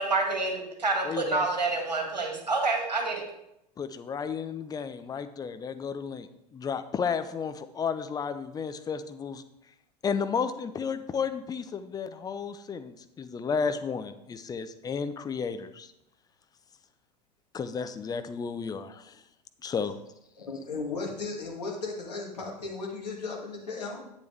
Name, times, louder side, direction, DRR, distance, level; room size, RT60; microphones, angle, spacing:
voice 1, 0.0-3.2, right 3 dB, 80° right, 2 dB, 1.9 m, -28 dB
voice 2, 1.0-1.4 3.8-9.4 10.0-15.9 17.5-19.2 19.6-20.0, left 6 dB, 20° left, 10 dB, 0.6 m, -33 dB
voice 3, 20.4-24.0, left 3 dB, 75° left, -1 dB, 2.4 m, -35 dB
10.0 x 8.3 x 3.4 m, 0.81 s
figure-of-eight pair, 85°, 21 cm